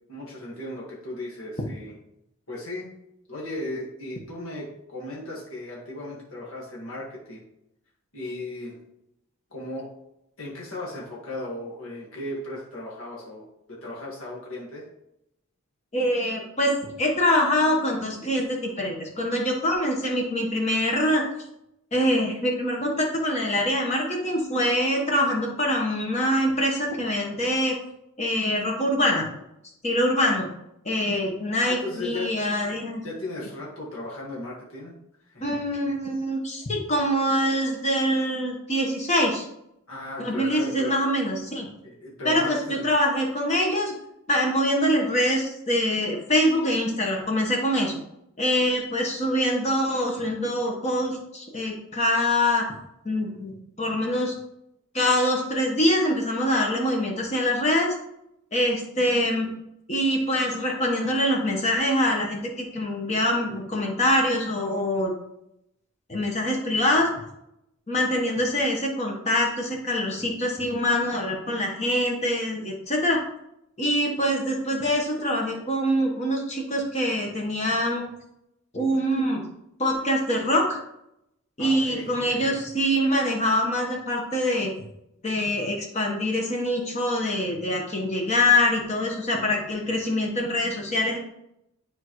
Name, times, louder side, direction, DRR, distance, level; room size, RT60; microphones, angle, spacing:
voice 1, 0.1-1.9 2.5-2.9 3.3-7.4 8.1-8.8 9.5-9.9 10.4-14.8 31.6-32.3 33.0-35.0 35.3-35.6 39.9-41.0 41.8-42.9 81.6-82.6, left 1 dB, 75° left, -4 dB, 1.8 m, -36 dB
voice 2, 15.9-21.2 21.9-27.7 28.2-29.3 29.8-30.5 30.8-33.0 35.4-39.5 40.2-41.7 42.2-43.9 44.3-48.0 48.4-52.6 53.0-53.5 53.8-54.3 54.9-57.9 58.5-59.5 59.9-65.1 66.1-67.1 67.9-73.2 73.8-78.0 78.7-79.4 79.8-80.7 81.6-84.7 85.2-91.2, left 1 dB, 30° left, 0 dB, 1.2 m, -24 dB
10.0 x 4.6 x 3.1 m, 0.81 s
head